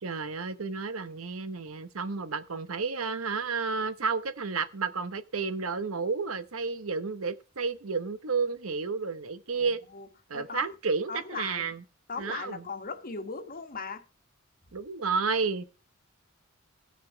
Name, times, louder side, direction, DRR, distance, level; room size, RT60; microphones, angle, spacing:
voice 1, 0.0-9.8 10.3-11.8 12.2-12.6 14.7-15.6, right 4 dB, 75° right, 1.0 m, -31 dB
voice 2, 9.5-10.1 10.3-10.7 11.1-11.8 12.1-14.0, left 4 dB, 45° left, 1.4 m, -38 dB
16.5 x 6.6 x 4.6 m
head